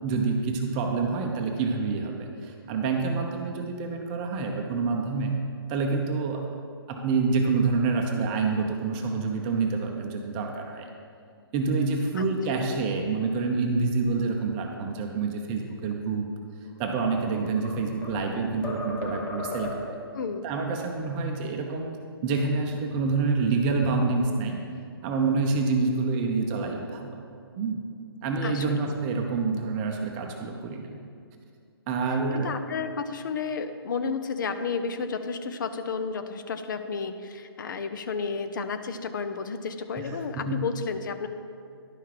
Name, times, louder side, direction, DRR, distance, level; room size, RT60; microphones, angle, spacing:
voice 1, 0.0-5.3 5.7-6.4 6.9-10.9 11.5-16.3 16.8-19.9 20.4-21.9 22.2-24.7 25.0-27.2 27.6-27.8 28.2-31.0 31.9-32.5 40.0-40.6, right 4 dB, 20° right, 2 dB, 0.7 m, -27 dB
voice 2, 12.1-12.6 20.1-20.4 28.4-28.9 32.4-41.3, left 5 dB, 50° left, 9 dB, 0.7 m, -32 dB
sound 1, 17.2-18.3 18.6-20.0, left 2 dB, 15° left, 1.0 m, -36 dB
11.0 x 5.6 x 4.8 m, 2.3 s
hypercardioid pair, 145°, 13 cm